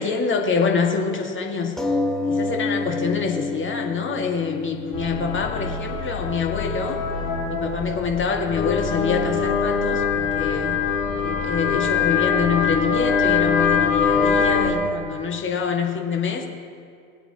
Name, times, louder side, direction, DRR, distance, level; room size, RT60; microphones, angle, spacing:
voice 1, 0.0-1.8 2.3-7.0 7.5-10.8 11.2-16.5, left 5 dB, 30° left, 2 dB, 1.9 m, -25 dB
sound 1, 1.8-6.8 7.5-7.6 7.9-8.0, left 2 dB, ahead, 1.2 m, -28 dB
sound 2, 4.9-14.7, left 6 dB, 65° left, 3.2 m, -23 dB
21.0 x 8.8 x 2.9 m, 2.2 s
hypercardioid pair, 75°, 40 cm